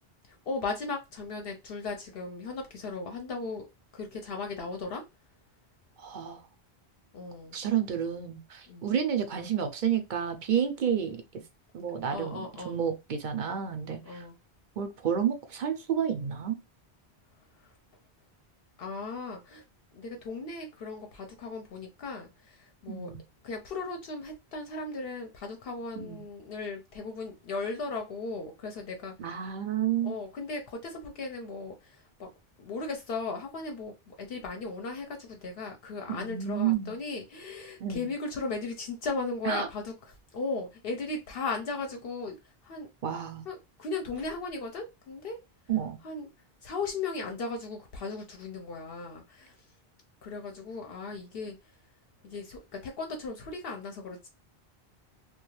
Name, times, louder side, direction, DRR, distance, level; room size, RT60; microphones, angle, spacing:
voice 1, 0.5-3.7 3.9-5.0 7.1-7.6 8.7-8.9 12.1-12.8 14.0-14.4 18.8-19.6 19.9-23.1 23.4-29.1 30.0-32.3 32.6-39.9 40.3-42.4 42.6-42.9 43.5-45.4 46.0-46.3 46.6-49.6 50.2-51.5 52.2-54.3, left 3 dB, 70° left, 0.8 m, -37 dB
voice 2, 6.0-6.4 7.5-11.2 11.7-14.2 14.8-16.6 22.9-23.2 26.0-26.2 29.2-30.2 36.1-36.9 37.8-38.1 39.4-39.7 43.0-43.5 45.7-46.0, right 8 dB, 55° right, 0.6 m, -30 dB
2.3 x 2.3 x 3.0 m
omnidirectional pair, 1.1 m